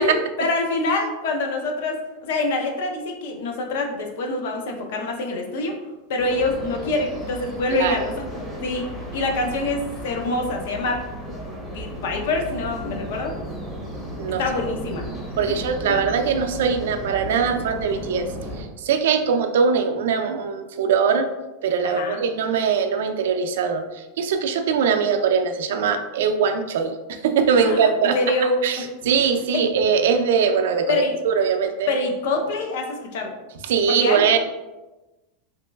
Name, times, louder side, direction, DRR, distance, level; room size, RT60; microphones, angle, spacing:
voice 1, 0.0-5.8 6.1-8.8 9.1-11.0 11.7-13.3 14.4-15.0 21.8-22.2 27.6-28.8 29.5-29.6 30.9-31.1 31.9-33.3 33.9-34.2, left 2 dB, 65° left, 3 dB, 0.5 m, -25 dB
sound 1, 6.2-18.6, equal, ahead, 0.6 m, -34 dB
voice 2, 15.4-18.3 18.6-21.3 21.6-31.9 33.6-34.4, right 6 dB, 85° right, 6 dB, 0.3 m, -21 dB
3.0 x 2.8 x 2.2 m, 1.1 s
supercardioid pair, 160°, 0 cm